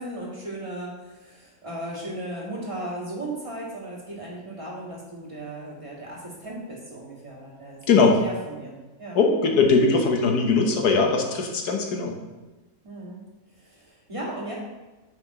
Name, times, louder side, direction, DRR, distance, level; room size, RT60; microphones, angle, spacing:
voice 1, 0.0-7.8 8.2-9.2 12.8-13.2 13.6-14.6, right 1 dB, 20° right, -5 dB, 2.0 m, -36 dB
voice 2, 7.9-8.2 9.1-12.1, left 4 dB, 90° left, 2 dB, 1.6 m, -20 dB
9.0 x 5.7 x 3.0 m, 1.2 s
omnidirectional pair, 1.6 m